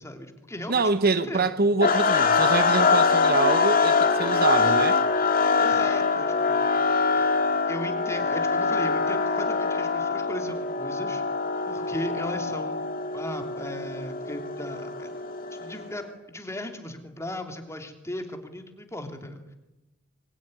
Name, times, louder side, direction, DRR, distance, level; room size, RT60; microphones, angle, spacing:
voice 1, 0.0-1.5 5.6-6.7 7.7-11.2 11.7-12.9 13.1-15.1 15.5-19.5, left 1 dB, 15° left, 3.1 m, -37 dB
voice 2, 0.7-5.0, right 3 dB, 50° right, 1.0 m, -25 dB
sound 1, 1.8-15.9, left 4 dB, 45° left, 2.4 m, -24 dB
24.0 x 23.0 x 9.9 m
head